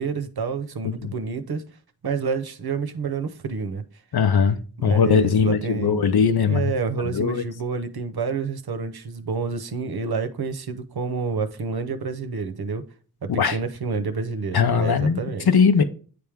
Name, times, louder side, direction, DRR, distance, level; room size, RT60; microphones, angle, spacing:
voice 1, 0.0-1.6 2.0-3.8 4.8-6.1 6.5-12.8 13.2-15.5, right 5 dB, 80° right, 0.8 m, -28 dB
voice 2, 4.1-6.7 7.1-7.4 13.4-13.6 14.5-15.2 15.5-15.8, left 6 dB, 85° left, 0.7 m, -20 dB
9.4 x 3.4 x 3.5 m
wide cardioid pair, 95°, 37 cm